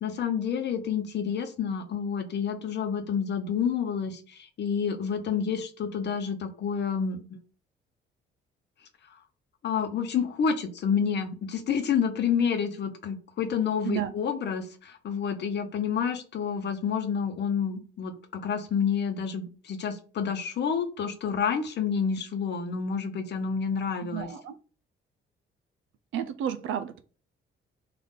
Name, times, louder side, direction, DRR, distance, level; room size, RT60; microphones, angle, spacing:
voice 1, 0.0-7.4 9.6-24.3, left 7 dB, 60° left, 7 dB, 0.8 m, -29 dB
voice 2, 24.0-24.5 26.1-27.0, right 10 dB, 80° right, 11 dB, 0.5 m, -32 dB
3.6 x 2.5 x 3.9 m, 0.38 s
cardioid pair, 90°, 20 cm